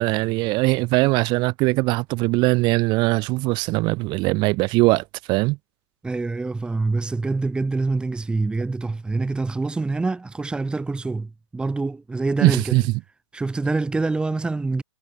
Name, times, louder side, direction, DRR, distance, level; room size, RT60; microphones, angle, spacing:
voice 1, 0.0-5.6 12.4-12.9, right 23 dB, 30° right, 3.4 m, -21 dB
voice 2, 6.0-12.7 13.3-14.8, right 3 dB, 5° right, 2.8 m, -25 dB
hypercardioid pair, 130°, 15 cm